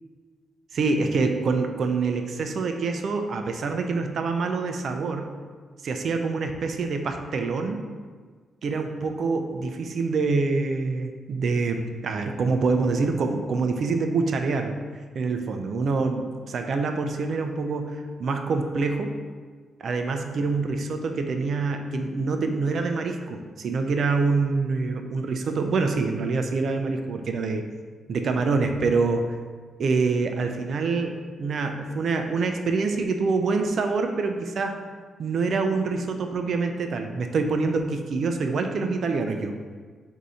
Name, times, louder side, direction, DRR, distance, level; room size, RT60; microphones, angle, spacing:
voice 1, 0.7-5.3 5.8-7.8 8.6-14.8 15.1-19.1 19.8-27.6 28.1-29.3 29.8-34.7 35.2-39.5, right 4 dB, 65° right, 5 dB, 0.4 m, -26 dB
4.0 x 2.7 x 4.8 m, 1.5 s
cardioid pair, 85°, 0 cm